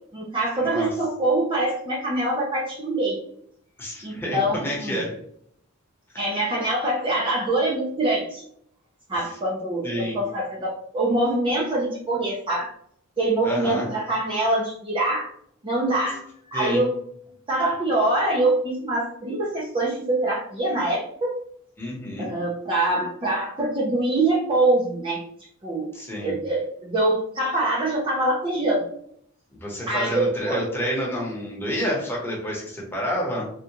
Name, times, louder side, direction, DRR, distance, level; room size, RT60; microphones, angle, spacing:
voice 1, 0.1-3.2 4.0-5.0 6.2-8.4 9.1-12.7 13.2-15.3 15.6-16.2 16.5-17.0 17.5-21.4 22.2-25.2 25.6-28.8 29.9-30.6, right 2 dB, 25° right, -3 dB, 0.6 m, -24 dB
voice 2, 3.8-5.2 9.8-10.2 13.4-13.9 16.5-16.8 21.8-22.3 25.9-26.3 29.5-33.5, equal, 10° left, -4 dB, 1.0 m, -29 dB
3.5 x 2.4 x 2.9 m, 0.67 s
head